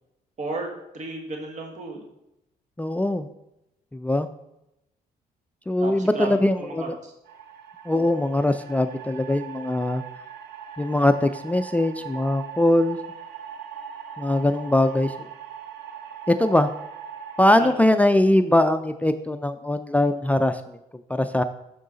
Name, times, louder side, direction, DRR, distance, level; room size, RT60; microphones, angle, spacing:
voice 1, 0.4-0.7 0.9-2.0 5.8-7.1 7.9-8.1 17.6-17.7, right 2 dB, 45° right, 2 dB, 1.4 m, -33 dB
voice 2, 2.8-3.3 3.9-4.3 5.7-6.9 7.9-10.0 10.8-13.0 14.2-15.3 16.3-16.7 17.4-20.8 21.1-21.4, left 1 dB, 10° left, 10 dB, 0.3 m, -21 dB
sound 1, 7.3-17.5, right 8 dB, 85° right, 0.6 m, -40 dB
6.5 x 6.4 x 3.9 m, 0.86 s
cardioid pair, 80°, 16 cm